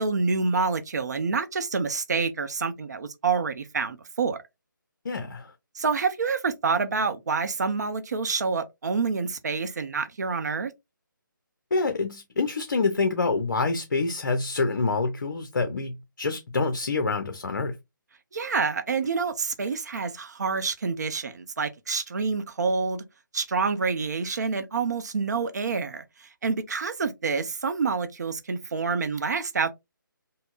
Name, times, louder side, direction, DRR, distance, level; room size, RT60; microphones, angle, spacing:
voice 1, 0.0-4.4 5.7-10.7 18.3-23.0 23.3-29.7, right 4 dB, 50° right, 0.6 m, -27 dB
voice 2, 5.0-5.5 11.7-17.8, left 3 dB, 55° left, 0.6 m, -26 dB
5.4 x 2.1 x 2.4 m
figure-of-eight pair, 150°, 11 cm